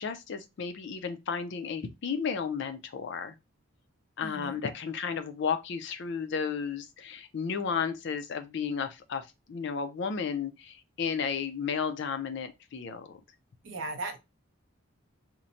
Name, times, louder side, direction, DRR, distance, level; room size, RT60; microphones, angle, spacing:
voice 1, 0.0-3.4 4.2-13.2, left 6 dB, 55° left, 0.4 m, -33 dB
voice 2, 4.2-4.5 13.6-14.2, right 2 dB, 60° right, 0.5 m, -37 dB
2.9 x 2.1 x 2.5 m
head